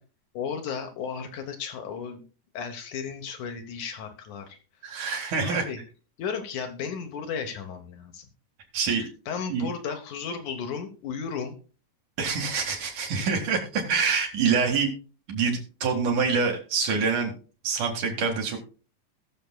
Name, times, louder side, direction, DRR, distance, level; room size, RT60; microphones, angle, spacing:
voice 1, 0.3-2.2 2.5-4.6 5.4-5.8 6.2-8.3 8.9-11.6, left 6 dB, 70° left, 6 dB, 2.4 m, -34 dB
voice 2, 4.8-5.6 8.7-9.0 9.5-9.7 12.2-14.9 15.3-17.3 17.6-18.6, right 5 dB, 65° right, 1 dB, 3.3 m, -26 dB
20.0 x 6.8 x 2.2 m, 0.37 s
omnidirectional pair, 3.8 m